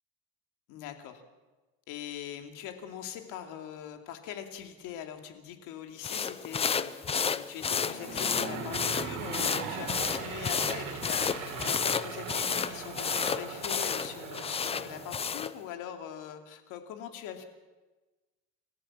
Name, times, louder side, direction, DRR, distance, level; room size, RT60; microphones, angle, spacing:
voice 1, 0.7-1.2 1.9-6.9 7.3-17.4, left 9 dB, 85° left, 5 dB, 2.8 m, -42 dB
sound 1, 6.0-15.5, left 6 dB, 20° left, 0.6 m, -32 dB
Aircraft / Engine, 7.5-15.5, right 6 dB, 75° right, 4.1 m, -40 dB
28.0 x 14.5 x 7.4 m, 1.2 s
cardioid pair, 145°, 31 cm